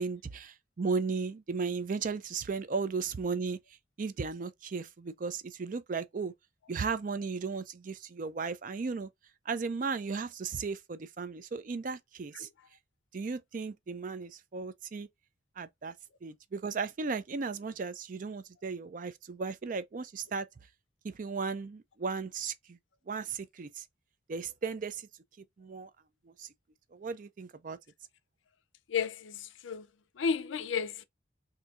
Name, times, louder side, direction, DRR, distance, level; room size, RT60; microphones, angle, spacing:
voice 1, 0.0-3.6 4.0-6.3 6.7-9.1 9.5-12.5 13.1-15.1 15.6-15.9 16.2-20.5 21.0-22.8 23.1-23.8 24.3-25.1 25.6-25.9 26.3-26.5 26.9-27.8, right 4 dB, 40° right, 0.4 m, -35 dB
voice 2, 28.9-29.9 30.1-31.0, left 6 dB, 80° left, 0.5 m, -33 dB
4.0 x 2.7 x 2.3 m
head